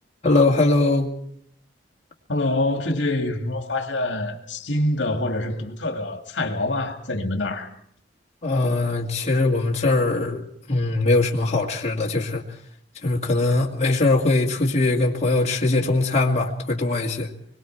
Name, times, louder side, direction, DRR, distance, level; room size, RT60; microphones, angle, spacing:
voice 1, 0.2-1.1 8.4-12.4 13.0-17.3, left 2 dB, 35° left, 2.1 m, -21 dB
voice 2, 2.3-7.7, left 2 dB, 70° left, 2.2 m, -25 dB
25.0 x 22.5 x 4.6 m
head